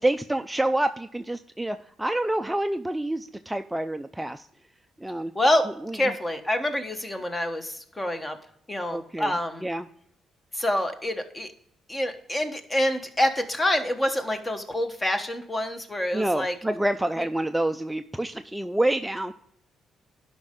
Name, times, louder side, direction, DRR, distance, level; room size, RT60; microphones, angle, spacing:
voice 1, 0.0-4.5 5.0-5.3 5.8-6.1 8.9-9.3 9.6-9.9 16.1-19.3, right 1 dB, 10° right, 8 dB, 0.4 m, -27 dB
voice 2, 5.3-5.7 5.9-8.4 8.7-9.7 10.5-11.5 11.9-16.5, left 1 dB, 20° left, 7 dB, 1.2 m, -26 dB
11.5 x 5.4 x 3.7 m, 0.70 s
cardioid pair, 90°, 0 cm